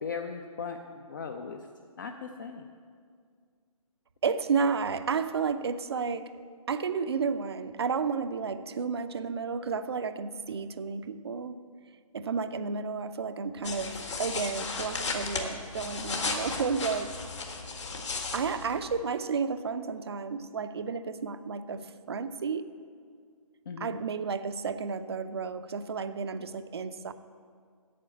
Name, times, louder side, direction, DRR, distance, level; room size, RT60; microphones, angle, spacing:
voice 1, 0.0-1.6 2.0-2.7 23.7-24.0, left 5 dB, 35° left, 5 dB, 0.5 m, -38 dB
voice 2, 4.2-6.4 6.7-11.6 12.1-17.2 18.3-22.7 23.8-27.1, right 5 dB, 45° right, 11 dB, 0.5 m, -32 dB
sound 1, 13.6-19.0, left 4 dB, 55° left, 1.7 m, -35 dB
8.6 x 7.6 x 8.1 m, 2.1 s
figure-of-eight pair, 140°, 18 cm